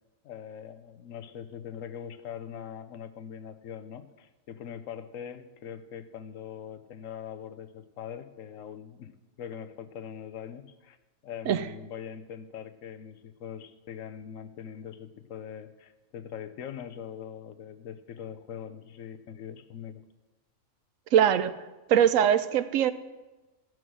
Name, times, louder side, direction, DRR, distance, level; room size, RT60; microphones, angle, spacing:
voice 1, 0.2-11.0 11.2-20.0, left 8 dB, 80° left, 11 dB, 1.1 m, -42 dB
voice 2, 21.1-21.5 21.9-22.9, right 9 dB, 80° right, 13 dB, 1.0 m, -22 dB
13.5 x 6.2 x 6.2 m, 1.1 s
omnidirectional pair, 1.4 m